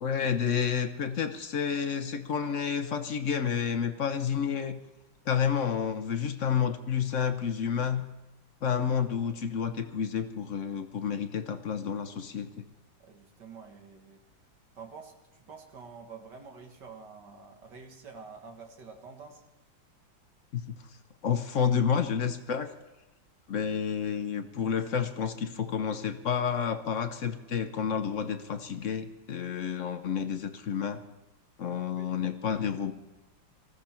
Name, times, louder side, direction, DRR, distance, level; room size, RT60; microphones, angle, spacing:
voice 1, 0.0-4.8 5.3-8.1 8.6-12.6 20.5-20.8 21.2-22.7 23.5-31.0 31.6-32.9, left 7 dB, 55° left, 8 dB, 0.8 m, -30 dB
voice 2, 13.0-14.2 14.8-19.4 31.6-32.2, right 5 dB, 60° right, 4 dB, 2.2 m, -48 dB
19.5 x 14.5 x 4.4 m, 1.0 s
omnidirectional pair, 2.1 m